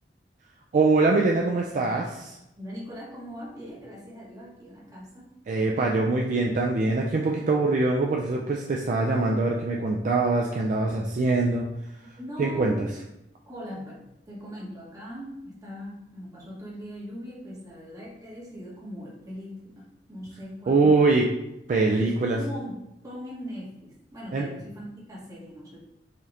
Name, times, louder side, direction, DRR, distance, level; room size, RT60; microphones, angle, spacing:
voice 1, 0.7-2.4 5.5-11.6 12.4-12.7 20.7-21.3 21.7-22.4 24.3-24.5, right 3 dB, 45° right, -1 dB, 0.3 m, -23 dB
voice 2, 2.5-5.3 12.0-12.9 13.5-21.1 21.9-25.8, equal, 20° right, -6 dB, 1.1 m, -40 dB
4.9 x 2.8 x 2.4 m, 0.87 s
head